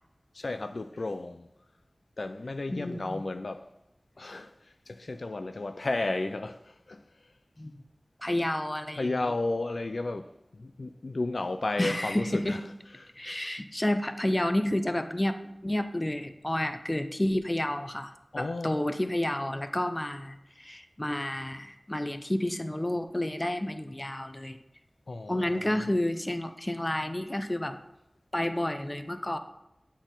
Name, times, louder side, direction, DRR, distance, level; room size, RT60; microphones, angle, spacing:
voice 1, 0.3-1.5 2.2-3.7 4.2-4.5 4.9-7.0 9.0-10.3 10.5-12.6 13.0-13.4 18.3-18.8 25.1-25.7, left 2 dB, 75° left, 0.3 m, -33 dB
voice 2, 2.7-3.2 7.6-7.8 8.2-9.1 11.8-12.6 13.2-15.4 15.6-24.6 25.3-27.8 28.3-29.4, left 1 dB, 25° left, 0.5 m, -30 dB
8.0 x 4.2 x 3.8 m
wide cardioid pair, 55°, 0 cm